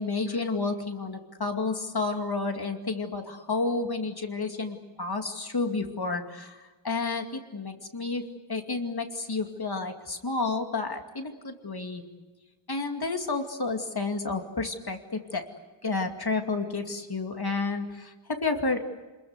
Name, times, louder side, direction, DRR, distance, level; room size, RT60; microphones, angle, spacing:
voice 1, 0.0-12.0 12.7-15.4 15.8-18.8, left 3 dB, 55° left, 4 dB, 2.5 m, -31 dB
27.5 x 21.5 x 8.2 m, 1.2 s
wide cardioid pair, 65°, 46 cm